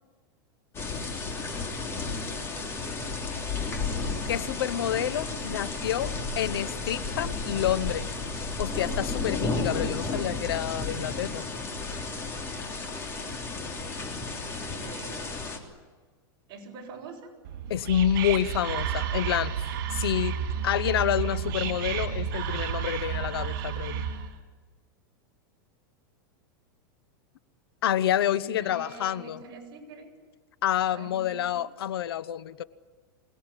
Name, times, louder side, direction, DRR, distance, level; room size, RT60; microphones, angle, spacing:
sound 1, 0.7-15.6, left 3 dB, 20° left, 3.2 m, -33 dB
voice 1, 4.3-8.1 8.6-11.4 17.7-20.4 20.6-24.0 27.8-29.4 30.6-32.6, left 11 dB, 90° left, 16 dB, 1.0 m, -28 dB
voice 2, 14.8-15.5 16.5-17.3 28.2-30.1 30.9-31.5, right 3 dB, 35° right, 0 dB, 7.1 m, -45 dB
Whispering, 17.4-24.4, right 8 dB, 60° right, 4.2 m, -31 dB
26.0 x 19.0 x 9.9 m, 1.5 s
supercardioid pair, 150°, 12 cm